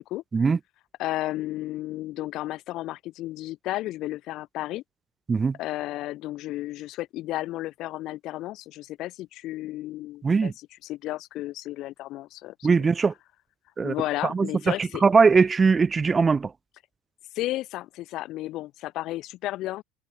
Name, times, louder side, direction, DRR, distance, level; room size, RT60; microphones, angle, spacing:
voice 1, 1.0-4.8 5.6-12.9 13.8-15.0 17.3-19.8, left 16 dB, 55° left, 3.2 m, -33 dB
voice 2, 12.6-13.1 13.8-13.9 14.2-16.5, right 5 dB, 25° right, 0.5 m, -20 dB
hypercardioid pair, 70°, 0 cm